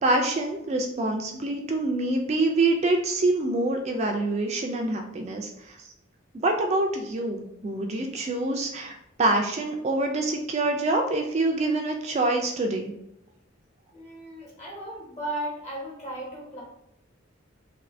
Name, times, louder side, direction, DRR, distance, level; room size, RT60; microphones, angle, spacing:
voice 1, 0.0-5.8 6.4-8.9 9.2-12.9, right 2 dB, 35° right, 3 dB, 0.3 m, -26 dB
voice 2, 13.9-16.6, right 1 dB, 35° left, -4 dB, 1.2 m, -35 dB
2.8 x 2.6 x 3.1 m, 0.81 s
head